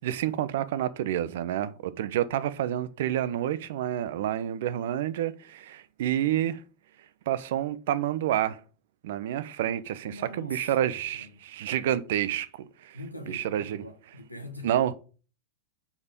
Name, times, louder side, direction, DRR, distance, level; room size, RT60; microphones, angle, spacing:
voice 1, 0.0-6.6 7.3-8.6 9.0-12.5 12.8-13.0 13.3-13.8 14.6-14.9, right 11 dB, 55° right, 0.5 m, -29 dB
voice 2, 10.0-10.7 11.2-11.4 12.9-14.7, left 1 dB, 90° left, 1.2 m, -43 dB
5.3 x 4.9 x 5.2 m
figure-of-eight pair, 90°, 0 cm